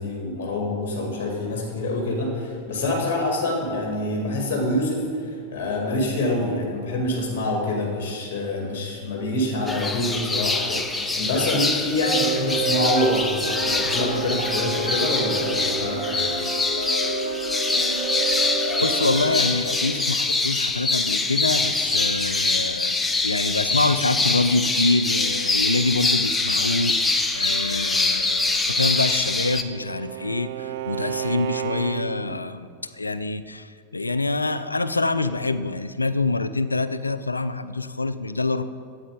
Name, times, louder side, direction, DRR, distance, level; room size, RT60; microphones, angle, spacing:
voice 1, 0.0-16.3, left 1 dB, 45° left, 0 dB, 2.1 m, -26 dB
sound 1, 9.7-29.6, left 3 dB, 10° left, 0.7 m, -24 dB
sound 2, 12.0-19.6, right 4 dB, 90° right, 2.7 m, -29 dB
voice 2, 18.8-32.7 32.9-38.6, left 3 dB, 80° left, 13 dB, 0.5 m, -26 dB
Bowed string instrument, 28.8-32.4, right 11 dB, 55° right, 0.4 m, -33 dB
12.5 x 8.5 x 5.2 m, 2.2 s
figure-of-eight pair, 90°, 0 cm